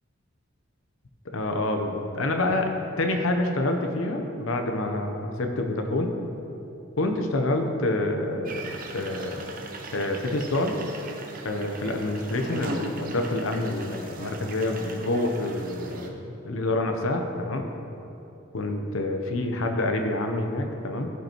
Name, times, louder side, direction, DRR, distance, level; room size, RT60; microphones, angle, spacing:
voice 1, 1.3-6.1 7.0-9.5 9.9-10.8 11.4-17.7 18.5-21.1, left 2 dB, 85° left, 4 dB, 0.8 m, -27 dB
sound 1, 8.4-16.1, right 2 dB, 45° right, 0.7 m, -39 dB
14.5 x 5.5 x 3.0 m, 2.8 s
head